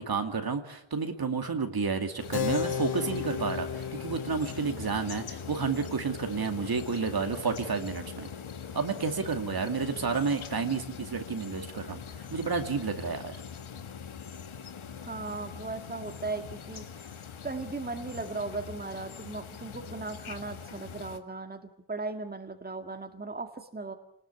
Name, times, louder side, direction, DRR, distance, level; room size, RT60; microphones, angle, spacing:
voice 1, 0.0-8.3 8.7-13.4, right 5 dB, 50° right, 6 dB, 2.5 m, -31 dB
sound 1, 2.2-21.2, left 7 dB, 90° left, 1.8 m, -42 dB
Keyboard (musical), 2.3-8.4, left 7 dB, 55° left, 0.9 m, -37 dB
voice 2, 15.0-23.9, right 3 dB, 20° right, 5 dB, 2.1 m, -37 dB
28.0 x 19.5 x 8.3 m, 0.77 s
wide cardioid pair, 100°, 47 cm